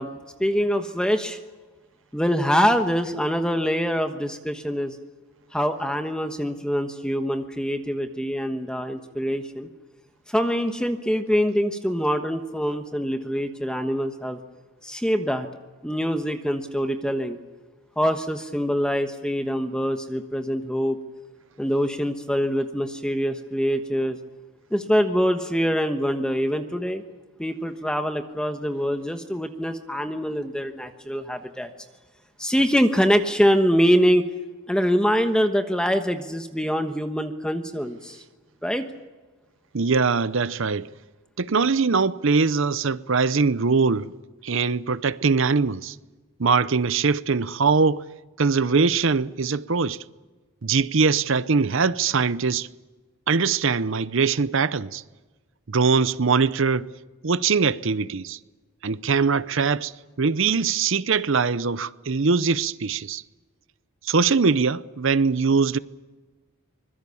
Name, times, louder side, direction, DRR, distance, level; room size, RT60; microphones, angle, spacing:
voice 1, 0.0-1.4 2.1-5.0 5.5-9.7 10.3-14.4 14.8-15.5 15.8-17.4 18.0-21.0 21.6-24.2 24.7-27.0 27.4-31.7 32.4-34.3 34.7-38.2 38.6-38.8, equal, 5° left, 1.2 m, -24 dB
voice 2, 39.7-40.9 41.4-44.1 44.4-46.0 46.4-48.1 48.4-50.0 50.6-52.7 53.3-55.0 55.7-56.9 57.2-58.4 58.8-59.9 60.2-63.2 64.0-65.8, right 5 dB, 60° right, 0.7 m, -22 dB
25.0 x 21.5 x 7.1 m
head